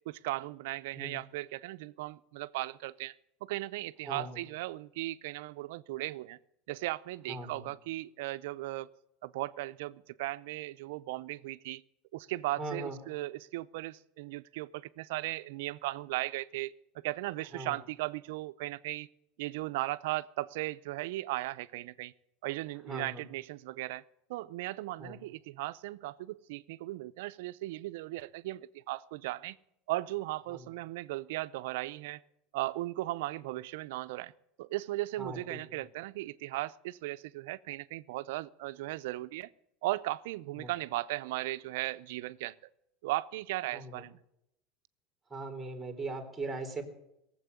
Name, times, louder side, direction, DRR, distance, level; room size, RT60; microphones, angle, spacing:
voice 1, 0.1-3.1 3.4-6.4 6.7-8.9 9.2-11.8 12.1-16.7 17.0-19.1 19.4-22.1 22.4-24.0 24.3-29.6 29.9-32.2 32.5-34.3 34.6-39.5 39.8-42.7 43.0-44.2, right 18 dB, 80° right, 0.6 m, -37 dB
voice 2, 4.1-4.4 7.3-7.7 12.6-13.0 17.5-17.8 22.9-23.2 25.0-25.2 30.5-30.7 35.2-35.6 40.6-40.7 43.7-44.0 45.3-46.8, right 2 dB, 10° right, 2.9 m, -40 dB
17.5 x 7.8 x 9.4 m
supercardioid pair, 135°, 0 cm